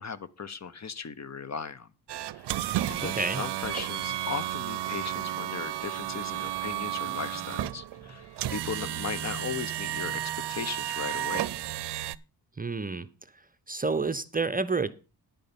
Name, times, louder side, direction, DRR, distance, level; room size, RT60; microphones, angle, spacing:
voice 1, 0.0-1.9 2.3-2.5 2.9-11.5, left 6 dB, 40° left, 15 dB, 0.8 m, -37 dB
sound 1, 2.1-12.2, right 13 dB, 75° right, 0.6 m, -33 dB
sound 2, 2.7-10.6, left 2 dB, 75° left, 3.8 m, -54 dB
voice 2, 3.0-3.4 12.6-13.1 13.7-14.9, right 3 dB, 20° right, 13 dB, 0.7 m, -29 dB
10.5 x 5.4 x 6.9 m, 0.33 s
cardioid pair, 75°, 41 cm